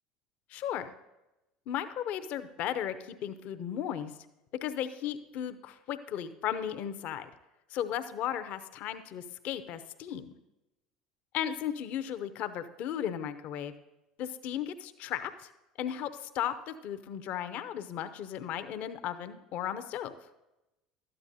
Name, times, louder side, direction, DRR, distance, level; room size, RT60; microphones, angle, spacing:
voice 1, 0.5-0.9 1.7-4.1 4.6-7.3 7.7-10.4 11.3-13.7 14.2-15.5 15.8-20.1, left 10 dB, 55° left, 10 dB, 0.6 m, -35 dB
12.5 x 8.8 x 2.7 m, 0.95 s
hypercardioid pair, 70°, 3 cm